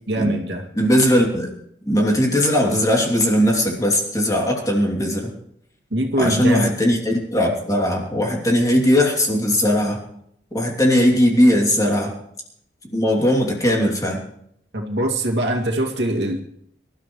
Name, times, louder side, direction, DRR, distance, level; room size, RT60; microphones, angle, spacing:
voice 1, 0.1-0.7 5.9-6.7 14.7-16.4, right 1 dB, 80° right, 2 dB, 2.4 m, -22 dB
voice 2, 0.7-1.5 1.9-5.3 6.2-10.0 10.5-12.1 12.9-14.2, equal, 20° left, 0 dB, 2.9 m, -19 dB
25.5 x 13.0 x 3.2 m, 0.71 s
head